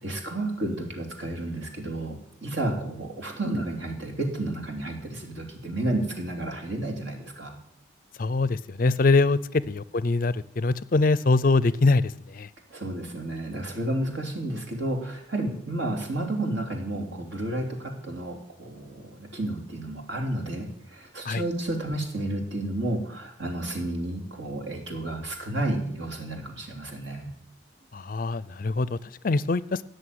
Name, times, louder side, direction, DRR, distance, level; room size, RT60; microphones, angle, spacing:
voice 1, 0.0-2.2 2.4-7.6 12.7-27.3, right 1 dB, 70° right, 3 dB, 3.2 m, -31 dB
voice 2, 8.2-12.5 21.3-21.4 27.9-29.0 29.2-29.8, left 3 dB, 45° left, 18 dB, 0.4 m, -23 dB
17.0 x 6.6 x 9.6 m, 0.72 s
head